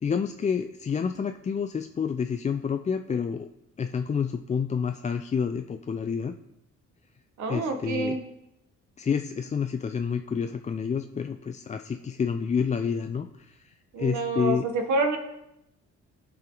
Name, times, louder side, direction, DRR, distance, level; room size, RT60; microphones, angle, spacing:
voice 1, 0.0-3.5 3.8-6.3 7.5-8.1 9.0-14.6, left 6 dB, 25° left, 6 dB, 0.4 m, -29 dB
voice 2, 7.4-8.2 13.9-15.2, right 3 dB, 70° right, 5 dB, 1.4 m, -27 dB
12.0 x 4.6 x 3.8 m, 0.86 s
cardioid pair, 90°, 30 cm